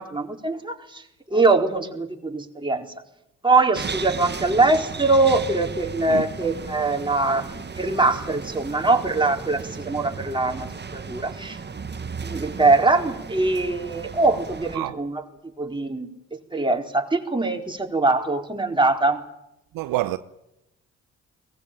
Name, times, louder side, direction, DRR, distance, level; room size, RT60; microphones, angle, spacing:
voice 1, 0.0-2.9 3.4-11.6 12.2-15.2 15.6-16.1 16.5-19.2, right 3 dB, 15° right, 4.4 m, -22 dB
sound 1, 3.7-14.8, right 5 dB, 30° right, 1.7 m, -35 dB
voice 2, 19.7-20.2, right 16 dB, 70° right, 1.0 m, -27 dB
23.0 x 20.5 x 9.0 m
hypercardioid pair, 45°, 36 cm